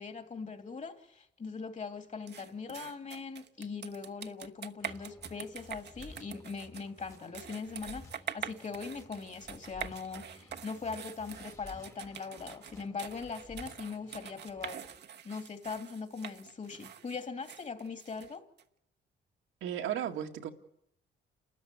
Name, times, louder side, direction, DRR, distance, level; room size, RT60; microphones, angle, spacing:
voice 1, 0.0-8.1 8.3-14.8 15.2-18.5, left 5 dB, 40° left, 2.9 m, -41 dB
sound 1, 2.3-18.6, right 8 dB, 60° right, 1.1 m, -45 dB
sound 2, 4.8-15.0, left 2 dB, 15° left, 1.8 m, -54 dB
voice 2, 19.6-20.5, right 10 dB, 85° right, 2.0 m, -34 dB
29.0 x 13.5 x 9.7 m
cardioid pair, 90°, 20 cm